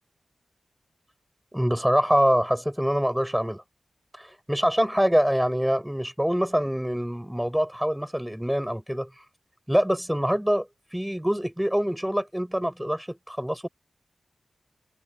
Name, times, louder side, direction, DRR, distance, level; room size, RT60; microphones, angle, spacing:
voice 1, 1.5-3.6 4.1-9.1 9.7-13.7, equal, 5° right, 5.3 m, -25 dB
wide cardioid pair, 130°, 0 cm